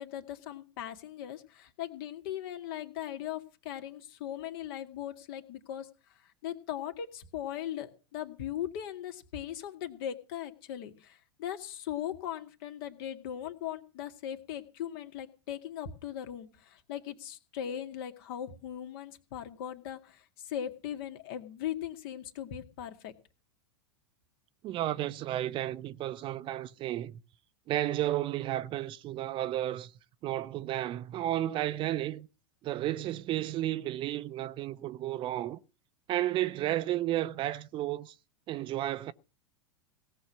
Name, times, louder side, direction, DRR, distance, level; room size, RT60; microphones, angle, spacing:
voice 1, 0.0-23.1, left 10 dB, 60° left, 2.0 m, -39 dB
voice 2, 24.6-27.2 27.7-29.9 30.2-32.3 32.6-35.6 36.1-38.1 38.5-39.1, right 13 dB, 40° right, 0.7 m, -32 dB
17.5 x 6.4 x 7.1 m
hypercardioid pair, 95°, 14 cm